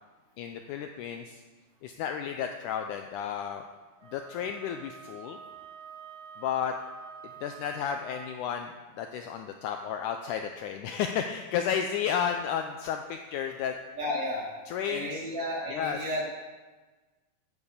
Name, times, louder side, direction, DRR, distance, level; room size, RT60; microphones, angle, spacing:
voice 1, 0.4-1.4 1.8-3.7 4.0-5.4 6.4-6.8 7.4-13.8 14.7-15.3 15.7-16.1, left 8 dB, 85° left, 5 dB, 1.8 m, -32 dB
Wind instrument woodwind instrument, 4.0-8.5, right 7 dB, 65° right, 1.4 m, -47 dB
voice 2, 14.0-14.5 14.9-16.2, left 1 dB, 40° right, -5 dB, 3.6 m, -32 dB
9.5 x 8.1 x 6.8 m, 1.3 s
omnidirectional pair, 4.1 m